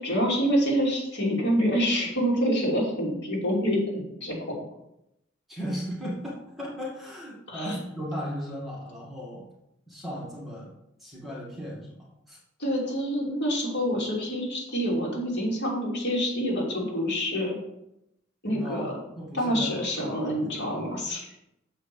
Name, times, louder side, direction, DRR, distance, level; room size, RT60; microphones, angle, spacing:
voice 1, 0.0-3.8 4.2-4.4 7.5-7.7 12.6-17.5 18.4-18.9 19.3-21.3, equal, 60° left, -4 dB, 3.2 m, -26 dB
voice 2, 5.5-9.5 9.9-10.7 11.0-12.4 18.5-18.9 19.2-20.9, equal, ahead, -5 dB, 2.1 m, -36 dB
7.2 x 4.9 x 6.9 m, 0.84 s
head